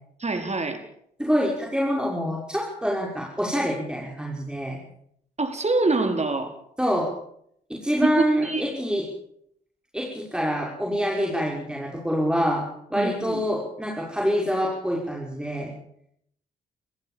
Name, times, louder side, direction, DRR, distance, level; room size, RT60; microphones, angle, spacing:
voice 1, 0.2-0.8 5.4-6.5 8.2-8.6 12.9-13.4, right 3 dB, 35° right, 6 dB, 4.7 m, -25 dB
voice 2, 1.2-4.8 6.8-7.1 7.7-9.0 9.9-12.6 12.9-15.7, equal, 5° right, -2 dB, 6.1 m, -26 dB
29.0 x 15.0 x 7.3 m, 0.71 s
hypercardioid pair, 45°, 21 cm